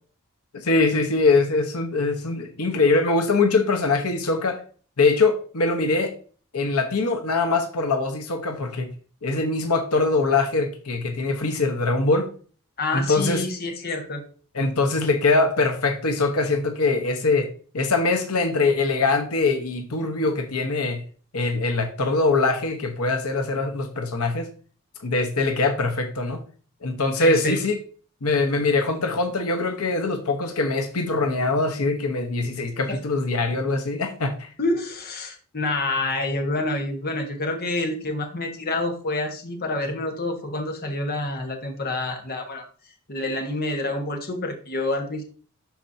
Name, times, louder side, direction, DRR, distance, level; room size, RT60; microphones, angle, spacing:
voice 1, 0.5-4.6 5.0-6.1 6.5-8.9 9.2-12.3 12.9-13.4 14.5-17.5 17.7-21.0 21.3-24.5 25.0-26.4 26.8-27.8 28.2-34.5, left 3 dB, 85° left, 4 dB, 1.1 m, -22 dB
voice 2, 12.8-14.2 27.2-27.6 32.9-33.0 34.6-42.6 43.1-45.2, left 2 dB, 45° left, 3 dB, 1.4 m, -27 dB
12.0 x 4.4 x 2.8 m, 0.42 s
head